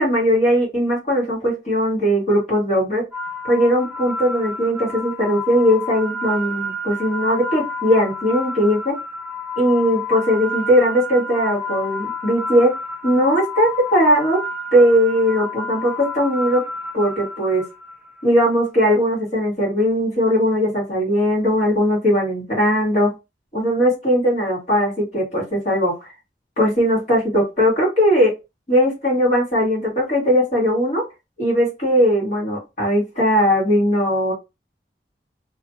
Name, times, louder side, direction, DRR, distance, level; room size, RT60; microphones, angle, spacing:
voice 1, 0.0-3.0 3.4-8.9 9.6-12.7 13.0-14.4 14.7-16.6 16.9-17.6 18.2-23.1 23.5-25.9 26.6-28.3 28.7-31.0 31.4-34.3, equal, 40° left, -4 dB, 1.5 m, -19 dB
sound 1, 3.1-18.2, left 2 dB, 5° right, 0.4 m, -30 dB
2.7 x 2.2 x 3.0 m, 0.25 s
head